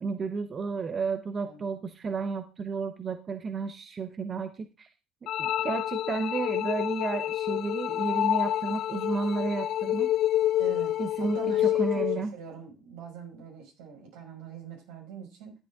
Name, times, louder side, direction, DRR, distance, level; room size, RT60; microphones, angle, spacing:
voice 1, 0.0-4.9 5.2-10.1 11.0-12.3, right 4 dB, 35° right, 9 dB, 1.0 m, -32 dB
sound 1, 5.3-12.2, left 12 dB, 60° left, 0.5 m, -28 dB
voice 2, 10.6-15.5, right 7 dB, 85° right, 0 dB, 5.8 m, -43 dB
13.0 x 8.2 x 3.7 m, 0.30 s
supercardioid pair, 100°, 0 cm